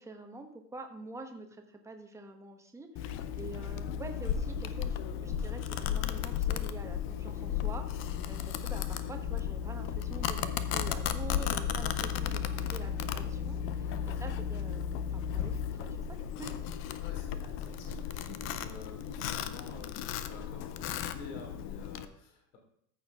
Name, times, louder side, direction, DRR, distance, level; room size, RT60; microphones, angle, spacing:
voice 1, 0.0-16.6, right 3 dB, 5° right, 4 dB, 1.1 m, -47 dB
Domestic sounds home sounds, 3.0-22.1, left 9 dB, 25° left, 0.5 m, -34 dB
voice 2, 13.7-14.1 16.9-22.6, left 3 dB, 50° left, 1 dB, 3.1 m, -50 dB
14.0 x 6.4 x 3.5 m, 0.68 s
hypercardioid pair, 110°, 49 cm